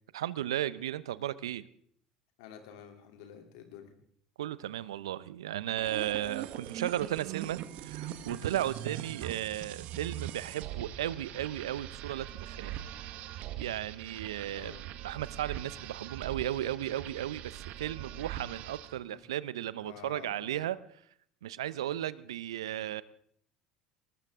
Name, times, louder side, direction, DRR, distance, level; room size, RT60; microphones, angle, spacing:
voice 1, 0.1-1.7 4.4-12.8 13.6-14.7 15.0-20.8 21.4-23.0, right 12 dB, 80° right, 18 dB, 0.7 m, -35 dB
voice 2, 2.4-3.9 14.4-14.9 19.1-19.2 19.8-20.7, left 8 dB, 70° left, 5 dB, 3.0 m, -50 dB
sound 1, 5.8-19.0, right 12 dB, 60° right, 1.3 m, -42 dB
20.0 x 19.5 x 3.7 m, 0.64 s
hypercardioid pair, 70°, 3 cm